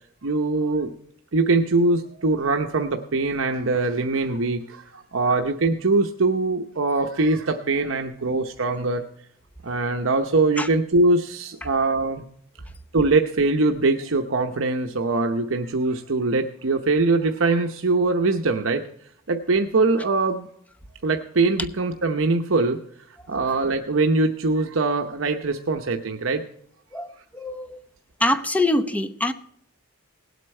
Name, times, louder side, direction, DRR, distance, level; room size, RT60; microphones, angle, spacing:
voice 1, 0.2-0.9 1.3-9.0 9.6-12.2 12.9-18.8 19.3-20.5 21.0-22.8 23.3-26.4, right 3 dB, 65° right, 5 dB, 0.8 m, -22 dB
voice 2, 26.9-27.8 28.2-29.3, left 1 dB, 5° left, 9 dB, 0.8 m, -24 dB
18.5 x 8.2 x 4.3 m, 0.66 s
head